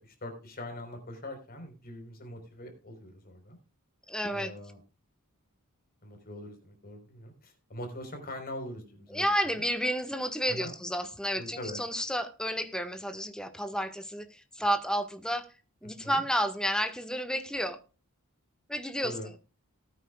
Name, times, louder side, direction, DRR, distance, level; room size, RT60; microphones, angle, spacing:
voice 1, 0.0-3.6 4.3-4.8 6.0-9.3 9.5-9.6 10.5-10.7 11.4-11.8 16.0-16.2 19.0-19.3, left 1 dB, 40° left, 5 dB, 3.9 m, -42 dB
voice 2, 4.1-4.5 9.1-15.5 15.8-17.8 18.7-19.1, equal, 5° left, 7 dB, 1.4 m, -31 dB
19.0 x 9.1 x 2.3 m, 0.33 s
head